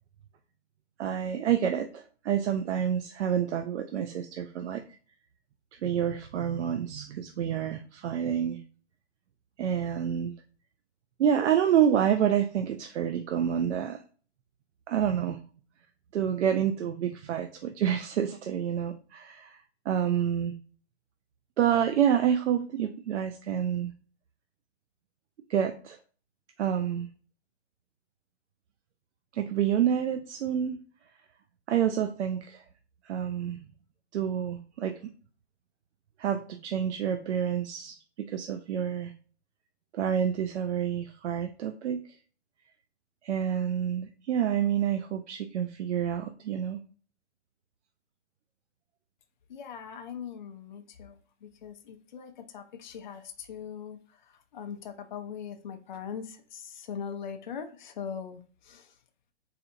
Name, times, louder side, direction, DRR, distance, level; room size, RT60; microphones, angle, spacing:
voice 1, 1.0-4.8 5.8-8.6 9.6-10.3 11.2-14.0 14.9-15.4 16.1-20.5 21.6-23.9 25.5-26.0 26.6-27.1 29.3-30.8 31.7-32.6 33.0-33.6 34.1-35.0 36.2-39.1 39.9-42.0 43.2-46.8, right 9 dB, 75° right, 6 dB, 0.5 m, -28 dB
voice 2, 49.5-58.9, left 7 dB, 45° left, 6 dB, 0.4 m, -41 dB
4.1 x 2.6 x 2.5 m, 0.41 s
hypercardioid pair, 165°, 35 cm